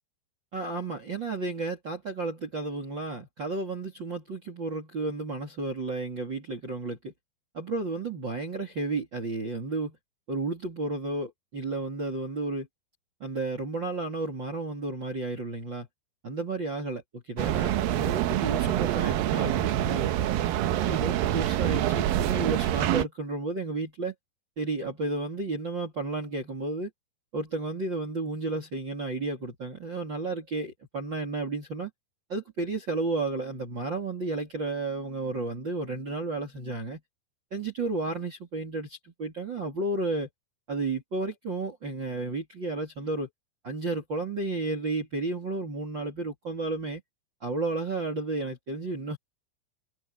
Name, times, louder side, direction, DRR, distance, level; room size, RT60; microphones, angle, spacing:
voice 1, 0.5-7.1 7.5-10.0 10.3-12.7 13.2-15.9 16.2-20.1 20.7-24.1 24.6-26.9 27.3-31.9 32.3-37.0 37.5-40.3 40.7-43.3 43.6-47.0 47.4-49.2, right 3 dB, 30° right, 3.0 m, -32 dB
sound 1, 17.4-23.1, right 12 dB, 75° right, 2.3 m, -26 dB
omnidirectional pair, 5.3 m